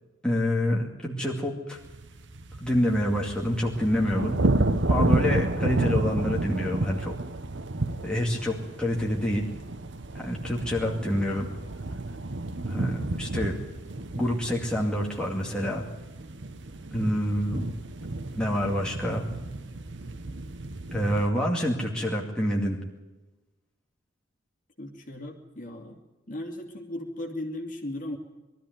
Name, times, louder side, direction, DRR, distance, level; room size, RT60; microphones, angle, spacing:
voice 1, 0.2-1.8 2.6-4.4 4.9-7.1 8.0-9.5 10.1-11.5 12.7-13.6 14.1-15.8 16.9-17.7 18.3-19.2 20.9-22.8, equal, 5° left, -2 dB, 2.3 m, -27 dB
sound 1, 1.8-21.3, right 2 dB, 65° right, 1.0 m, -31 dB
voice 2, 24.8-26.0 26.3-28.2, left 1 dB, 40° left, 2 dB, 2.8 m, -36 dB
21.5 x 13.5 x 9.3 m, 1.1 s
head